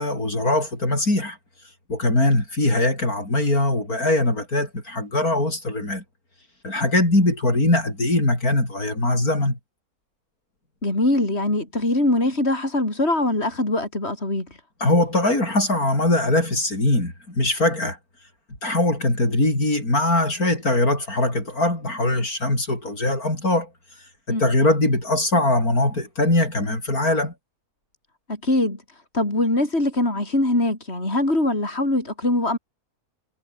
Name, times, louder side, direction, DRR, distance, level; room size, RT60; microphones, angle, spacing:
voice 1, 0.0-1.4 1.9-6.0 6.6-9.6 14.8-18.0 18.6-23.7 24.3-27.3, left 2 dB, 70° left, 8.3 m, -21 dB
voice 2, 10.8-14.5 24.3-24.4 28.3-28.8 29.1-32.6, left 1 dB, 40° left, 6.9 m, -22 dB
omnidirectional pair, 1.6 m